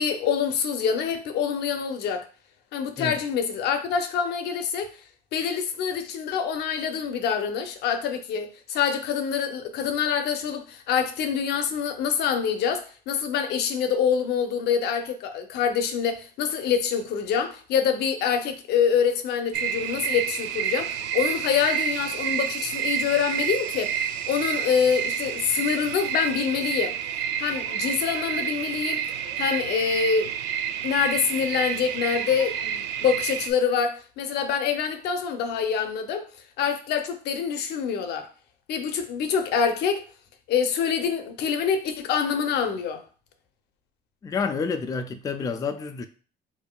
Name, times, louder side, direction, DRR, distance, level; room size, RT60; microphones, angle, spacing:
voice 1, 0.0-2.3 2.7-4.9 5.3-27.0 27.4-29.0 29.4-30.3 30.8-36.3 36.6-38.3 38.7-40.1 40.5-43.0, left 7 dB, 75° left, 0.6 m, -26 dB
sound 1, 19.5-33.5, right 9 dB, 85° right, 0.4 m, -29 dB
voice 2, 44.2-46.1, left 5 dB, 20° left, 0.3 m, -29 dB
5.1 x 2.6 x 2.3 m
cardioid pair, 110°, 17 cm